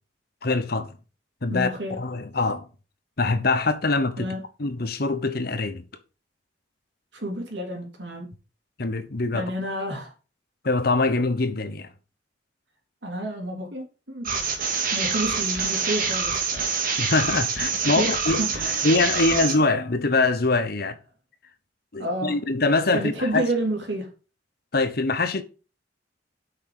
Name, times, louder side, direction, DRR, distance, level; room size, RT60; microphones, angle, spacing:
voice 1, 0.4-0.9 1.4-1.7 2.0-2.7 3.2-4.3 4.6-5.8 8.8-9.5 10.6-11.9 17.0-18.4 18.8-20.9 21.9-23.4 24.7-25.4, left 3 dB, 55° left, 1.0 m, -23 dB
voice 2, 1.5-2.0 4.2-4.4 7.1-8.3 9.3-10.1 13.0-14.5 14.9-16.7 17.9-18.9 22.0-22.4 22.9-24.1, right 1 dB, 70° right, 3.4 m, -30 dB
sound 1, 14.2-19.5, right 5 dB, 50° right, 2.1 m, -26 dB
7.9 x 6.0 x 5.0 m
head